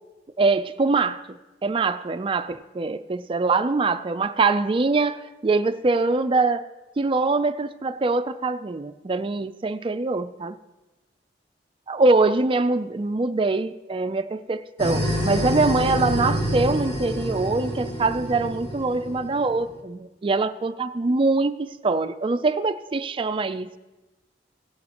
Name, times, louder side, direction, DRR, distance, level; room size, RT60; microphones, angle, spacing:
voice 1, 0.4-1.2 1.6-6.7 7.0-10.5 11.9-23.8, right 3 dB, 30° right, 0.4 m, -23 dB
sound 1, 14.8-19.6, equal, 30° left, 1.9 m, -27 dB
17.0 x 10.5 x 2.9 m
head